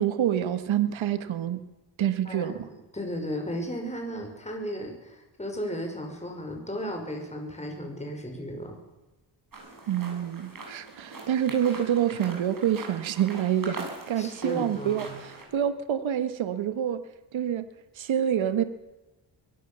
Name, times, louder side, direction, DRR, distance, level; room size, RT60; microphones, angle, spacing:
voice 1, 0.0-1.6 2.0-2.6 9.9-17.0 17.3-17.7 17.9-18.6, right 10 dB, 75° right, 11 dB, 1.6 m, -27 dB
voice 2, 2.2-8.8 14.2-15.2, equal, 15° left, 2 dB, 5.7 m, -35 dB
sound 1, 9.5-15.4, right 3 dB, 45° right, 7.6 m, -42 dB
22.0 x 18.0 x 7.0 m, 1.1 s
cardioid pair, 80°, 47 cm